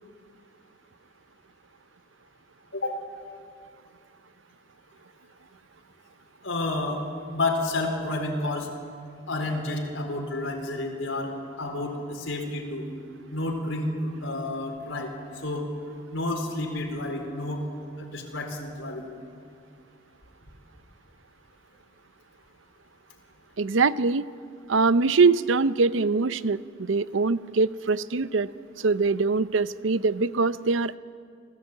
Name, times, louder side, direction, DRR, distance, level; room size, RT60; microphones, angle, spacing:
voice 1, 6.4-7.0 7.3-8.7 9.3-11.3 11.6-12.9 13.3-15.1 15.4-15.6 16.1-17.6 18.0-19.0, left 2 dB, 90° left, 1 dB, 4.2 m, -30 dB
voice 2, 23.6-24.2 24.7-28.5 28.8-31.0, right 4 dB, 80° right, 15 dB, 0.6 m, -23 dB
26.5 x 17.0 x 8.5 m, 2.3 s
head